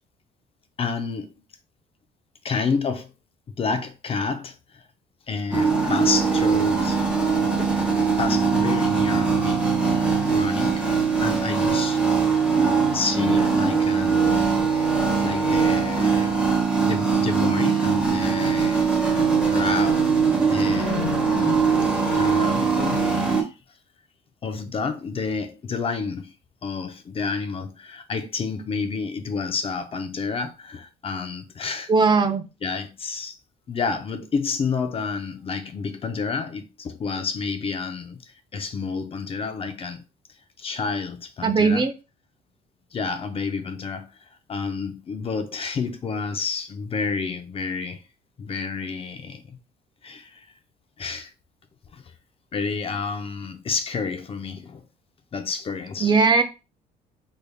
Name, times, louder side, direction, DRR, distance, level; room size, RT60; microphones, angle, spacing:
voice 1, 0.8-1.3 2.4-3.1 3.6-4.8 5.3-7.1 7.4-7.7 8.2-9.6 10.3-10.9 11.2-12.0 12.9-14.7 15.2-16.3 16.8-20.1 20.5-20.9 21.5-23.5 24.4-26.3 26.6-31.9 32.6-33.4 33.7-40.0 40.6-41.8 42.9-48.0 48.4-49.6 50.0-50.5 51.0-51.3 51.9-52.0 52.5-54.8 55.3-56.1, left 5 dB, 35° left, 0.5 m, -30 dB
sound 1, 5.5-23.4, right 5 dB, 5° right, 0.9 m, -21 dB
voice 2, 31.9-32.5 41.4-41.9 56.0-56.4, right 4 dB, 25° right, 0.5 m, -18 dB
3.4 x 3.3 x 2.2 m
cardioid pair, 110°, 17 cm